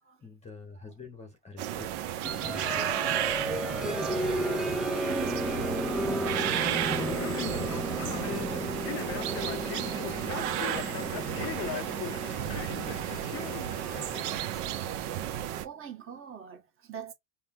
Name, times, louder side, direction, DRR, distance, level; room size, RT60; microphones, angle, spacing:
voice 1, 0.2-1.9 2.4-4.5 5.1-8.8 9.5-11.7 12.2-14.7, left 3 dB, 15° left, 1.0 m, -49 dB
sound 1, 1.6-15.7, right 11 dB, 50° right, 1.0 m, -33 dB
sound 2, 2.2-14.8, equal, ahead, 0.3 m, -34 dB
voice 2, 5.2-5.6 6.0-6.4 10.6-10.8 15.2-17.1, right 8 dB, 25° right, 1.3 m, -45 dB
Male speech man speaking, 6.9-14.2, left 11 dB, 30° left, 0.7 m, -40 dB
5.5 x 2.3 x 2.5 m
supercardioid pair, 125°, 49 cm